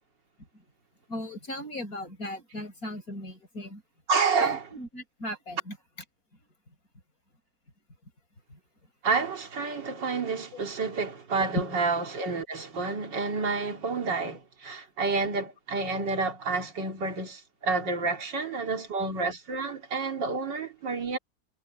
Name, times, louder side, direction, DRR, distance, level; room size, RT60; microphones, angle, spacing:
voice 1, 1.1-3.8 4.4-5.8 8.5-8.6 10.5-10.6, left 1 dB, 50° left, 6.5 m, -38 dB
voice 2, 4.1-4.7 9.0-21.2, right 4 dB, 80° right, 3.0 m, -29 dB
omnidirectional pair, 1.9 m